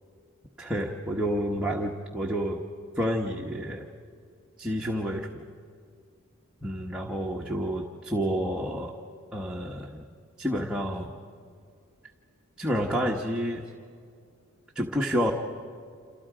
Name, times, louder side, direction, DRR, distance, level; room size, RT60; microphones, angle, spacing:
voice 1, 0.6-2.6 3.0-3.9 4.6-5.4 6.6-8.9 9.3-10.0 10.4-11.1 12.6-13.6 14.7-15.3, equal, 5° right, -2 dB, 1.3 m, -29 dB
30.0 x 28.0 x 5.0 m, 2.3 s
head